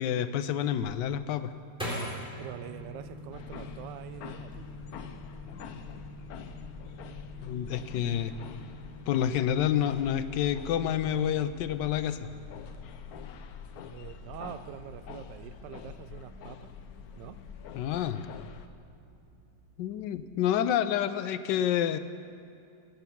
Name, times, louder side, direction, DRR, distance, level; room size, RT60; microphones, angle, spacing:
voice 1, 0.0-1.5 7.4-8.3 9.1-12.3 17.7-18.3 19.8-22.0, left 10 dB, 85° left, 12 dB, 1.3 m, -28 dB
sound 1, 0.8-3.9 4.4-5.1 5.5-5.9, equal, 5° right, 3.6 m, -39 dB
sound 2, 2.3-20.4, left 1 dB, 75° right, 2.2 m, -50 dB
voice 2, 2.4-4.6 13.9-16.7 17.2-17.4, right 11 dB, 90° right, 12 dB, 1.3 m, -44 dB
sound 3, 3.3-18.7, left 7 dB, 70° left, 1.1 m, -45 dB
16.5 x 8.0 x 7.1 m, 2.6 s
omnidirectional pair, 1.8 m